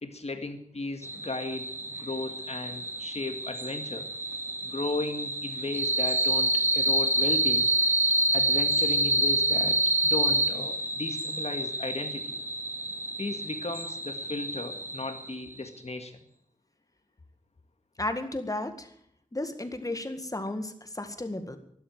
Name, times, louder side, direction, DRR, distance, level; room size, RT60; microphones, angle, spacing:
voice 1, 0.0-4.1 4.6-7.7 8.3-12.4 13.2-16.2, left 2 dB, 55° left, 7 dB, 2.0 m, -36 dB
sound 1, 1.0-15.5, right 1 dB, 20° right, 2.2 m, -28 dB
voice 2, 18.0-18.9 19.3-21.6, left 1 dB, 25° left, 8 dB, 1.9 m, -33 dB
12.5 x 11.5 x 8.9 m, 0.69 s
wide cardioid pair, 70°, 13 cm